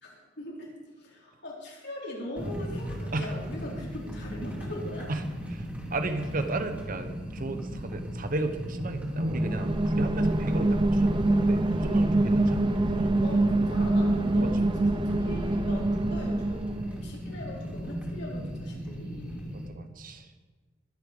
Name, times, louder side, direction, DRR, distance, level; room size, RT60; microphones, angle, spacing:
voice 1, 0.0-5.1 13.1-19.6, left 1 dB, 65° left, -4 dB, 4.4 m, -41 dB
sound 1, 2.3-19.7, equal, 10° right, 2.7 m, -37 dB
voice 2, 5.5-13.2 14.4-14.5 15.9-16.0 19.5-20.3, right 2 dB, 45° right, 8 dB, 1.2 m, -34 dB
sound 2, 9.2-17.0, right 2 dB, 25° right, 0.7 m, -25 dB
21.5 x 8.3 x 5.3 m, 1.3 s
head